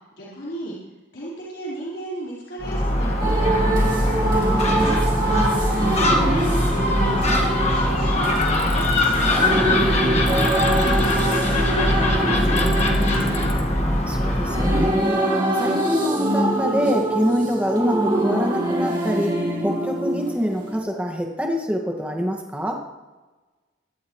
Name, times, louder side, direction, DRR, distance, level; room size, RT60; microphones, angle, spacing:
voice 1, 0.2-0.7 1.1-4.2 5.7-6.6 6.8-10.5 10.8-13.5, right 1 dB, 65° left, -8 dB, 4.7 m, -35 dB
Gull seagull, 2.6-15.0, left 1 dB, 35° left, 1.7 m, -21 dB
sound 1, 3.2-20.8, right 1 dB, 25° right, 3.5 m, -24 dB
voice 2, 4.4-5.3 13.8-15.2 15.6-22.8, equal, 5° right, 1 dB, 1.9 m, -25 dB
Tools, 8.4-9.2 10.3-11.4 12.6-13.6, left 9 dB, 90° left, 2.4 m, -39 dB
23.5 x 12.5 x 3.2 m, 1.2 s
head